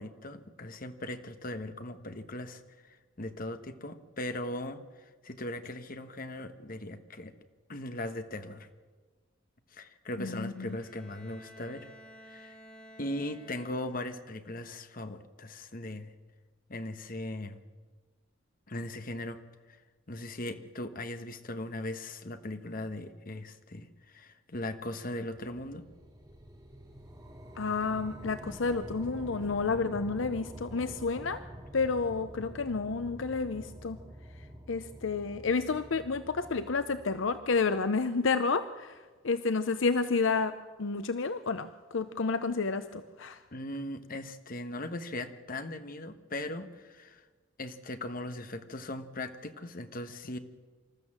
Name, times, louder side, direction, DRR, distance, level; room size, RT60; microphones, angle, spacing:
voice 1, 0.0-7.3 7.7-8.7 9.7-11.9 12.2-12.6 13.0-16.1 16.7-17.6 18.7-19.4 19.7-19.8 20.1-25.8 43.5-47.3 47.6-50.4, left 1 dB, 45° left, 9 dB, 1.3 m, -39 dB
voice 2, 10.2-10.8 27.6-31.4 31.7-34.0 34.7-38.9 39.2-40.5 40.8-43.4, left 4 dB, 75° left, 11 dB, 0.7 m, -30 dB
Bowed string instrument, 10.5-14.2, equal, 5° left, 2.5 m, -53 dB
sound 1, 25.3-37.9, equal, 20° right, 2.9 m, -47 dB
26.5 x 13.5 x 7.4 m, 1.4 s
head